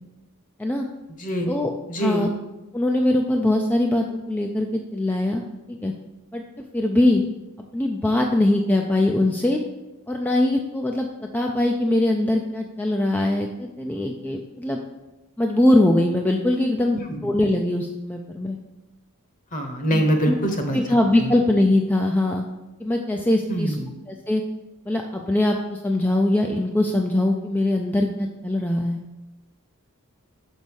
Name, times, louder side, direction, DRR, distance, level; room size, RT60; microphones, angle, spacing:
voice 1, 1.2-1.5 1.9-2.3 17.1-17.3 19.5-20.8 21.2-21.4 23.5-23.9, right 1 dB, 40° left, 4 dB, 1.1 m, -24 dB
voice 2, 2.0-2.3 2.7-5.4 5.7-5.9 6.3-6.4 6.7-7.2 7.7-9.6 10.1-11.1 11.3-14.8 15.4-18.6 19.9-20.4 20.7-22.4 22.8-23.7 24.1-24.4 24.9-29.0, left 1 dB, 10° left, 2 dB, 0.4 m, -22 dB
5.4 x 5.2 x 6.3 m, 1.0 s
head